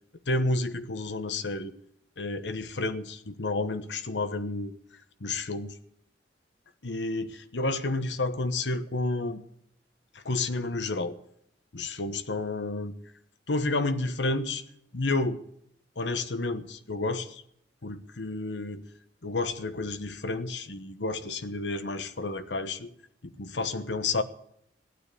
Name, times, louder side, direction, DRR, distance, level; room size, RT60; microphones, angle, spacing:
voice 1, 0.3-1.7 2.2-4.7 5.2-5.7 6.8-9.4 10.1-11.2 11.7-12.9 13.5-14.6 14.9-15.4 16.0-17.4 17.8-18.8 19.2-22.9 23.2-24.2, left 2 dB, 90° left, 1.1 m, -30 dB
16.0 x 9.4 x 8.3 m
head